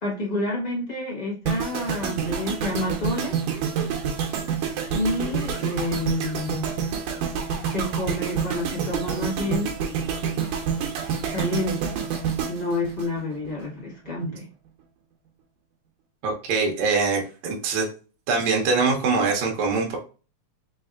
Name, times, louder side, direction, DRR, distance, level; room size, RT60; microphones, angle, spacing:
voice 1, 0.0-3.4 4.9-6.7 7.6-9.7 11.3-12.1 12.5-14.5, left 2 dB, 40° left, -4 dB, 0.5 m, -29 dB
sound 1, 1.5-13.6 13.9-14.2, right 7 dB, 90° right, 2.2 m, -28 dB
voice 2, 16.2-17.9 18.3-20.0, right 4 dB, 75° right, 0 dB, 2.1 m, -23 dB
5.1 x 3.4 x 2.4 m, 0.36 s
omnidirectional pair, 3.4 m